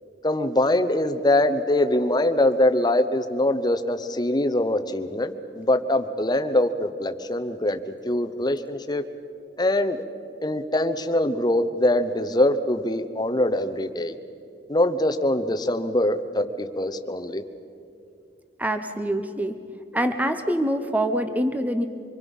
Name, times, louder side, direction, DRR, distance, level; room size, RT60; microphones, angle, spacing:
voice 1, 0.2-9.0 9.6-10.0 10.4-14.2 14.7-17.4, left 1 dB, 25° left, 8 dB, 0.9 m, -23 dB
voice 2, 18.6-19.5 19.9-21.9, right 1 dB, 10° right, 7 dB, 0.9 m, -25 dB
26.0 x 22.0 x 5.5 m, 2.5 s
head